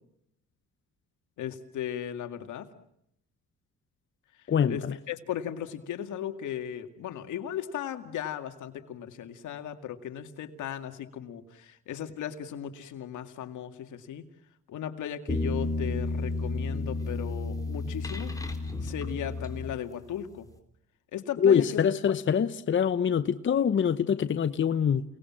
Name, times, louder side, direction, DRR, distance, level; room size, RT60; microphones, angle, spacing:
voice 1, 1.4-2.7 4.7-14.2 14.7-18.3 18.8-20.5 21.1-21.8 22.1-22.5, left 10 dB, 80° left, 2.3 m, -37 dB
voice 2, 4.5-4.9 21.4-25.0, left 7 dB, 40° left, 0.9 m, -24 dB
sound 1, 15.3-20.2, left 3 dB, 10° left, 3.8 m, -32 dB
29.5 x 19.5 x 7.6 m
cardioid pair, 90°, 30 cm